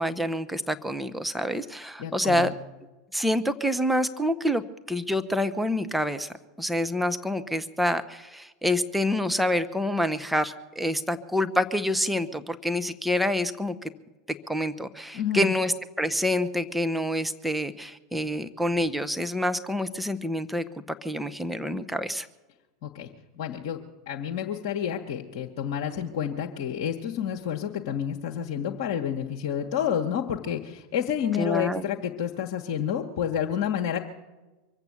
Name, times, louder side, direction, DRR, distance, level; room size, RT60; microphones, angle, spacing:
voice 1, 0.0-2.5 3.1-4.6 4.9-6.3 6.6-13.9 14.5-20.7 21.0-22.3 31.3-31.8, left 1 dB, ahead, 9 dB, 0.9 m, -27 dB
voice 2, 2.0-2.5 15.1-15.5 22.8-23.1 23.4-23.8 24.1-34.0, left 9 dB, 55° left, 1 dB, 1.3 m, -29 dB
24.0 x 8.2 x 7.0 m, 1.2 s
figure-of-eight pair, 85°, 2 cm